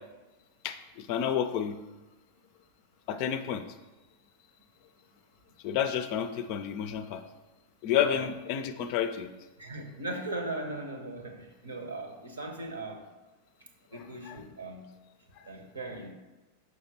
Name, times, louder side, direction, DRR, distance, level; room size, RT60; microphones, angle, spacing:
voice 1, 0.6-1.8 3.1-3.6 5.6-7.2 7.8-9.3 14.3-14.4 15.4-15.5, left 9 dB, 45° left, 11 dB, 0.4 m, -30 dB
voice 2, 9.6-13.1 13.9-14.9 15.4-16.1, right 2 dB, 75° right, 5 dB, 0.8 m, -38 dB
6.4 x 5.7 x 2.8 m, 1.1 s
figure-of-eight pair, 90°, 0 cm